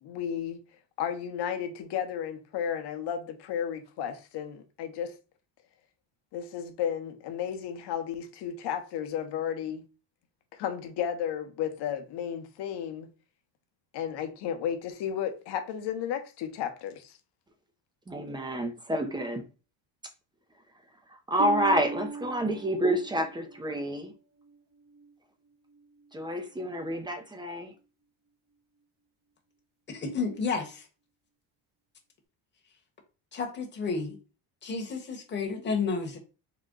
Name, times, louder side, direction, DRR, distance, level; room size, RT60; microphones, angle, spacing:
voice 1, 0.0-0.6 1.0-5.1 6.3-9.8 10.5-13.1 13.9-17.2, left 9 dB, 55° left, 0.8 m, -33 dB
voice 2, 18.1-19.4 21.1-24.1 26.1-27.7, equal, 10° right, 0.4 m, -29 dB
Harp, 21.4-25.1 25.7-26.1 26.7-26.8, right 5 dB, 40° right, 1.0 m, -39 dB
voice 3, 29.9-30.9 33.3-34.2 34.6-36.2, left 4 dB, 20° left, 1.0 m, -31 dB
3.9 x 2.2 x 3.7 m
cardioid pair, 125°, 49 cm